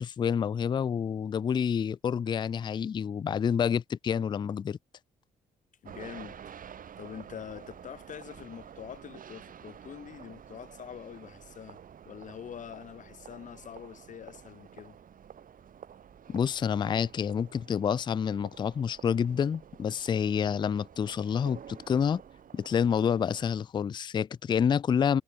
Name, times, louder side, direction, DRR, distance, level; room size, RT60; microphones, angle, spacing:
voice 1, 0.0-4.8 16.3-22.2 22.5-25.2, left 7 dB, 25° left, 0.3 m, -28 dB
voice 2, 5.8-6.4 7.0-11.8 12.1-15.0, left 8 dB, 40° left, 0.8 m, -45 dB
sound 1, 5.8-23.5, right 8 dB, 45° right, 1.6 m, -50 dB
figure-of-eight pair, 40°, 19 cm